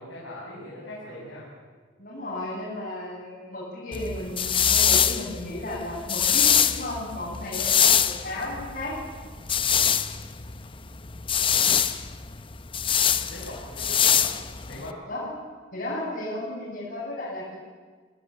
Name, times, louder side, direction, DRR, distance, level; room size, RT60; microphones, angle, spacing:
voice 1, 0.0-1.5 13.3-14.3 14.7-15.0, left 1 dB, 80° left, -5 dB, 7.0 m, -40 dB
voice 2, 2.0-9.0 15.1-15.3 15.7-17.5, left 1 dB, 50° left, -8 dB, 7.9 m, -34 dB
sound 1, 3.9-14.9, left 8 dB, 25° left, 0.8 m, -24 dB
26.5 x 18.0 x 8.7 m, 1.5 s
head